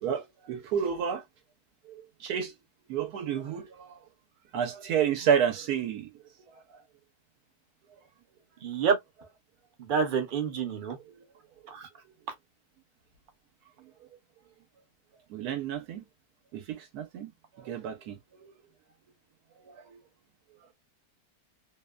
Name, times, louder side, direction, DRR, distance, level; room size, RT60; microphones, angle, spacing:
voice 1, 0.0-1.2 1.9-2.5 2.9-4.0 4.5-6.1 15.3-16.0 16.5-17.3 17.6-18.2 19.7-20.0, right 8 dB, 85° right, 1.1 m, -30 dB
voice 2, 8.6-9.0 9.8-11.0 11.7-11.9, right 6 dB, 50° right, 0.6 m, -28 dB
2.8 x 2.1 x 2.2 m
omnidirectional pair, 1.6 m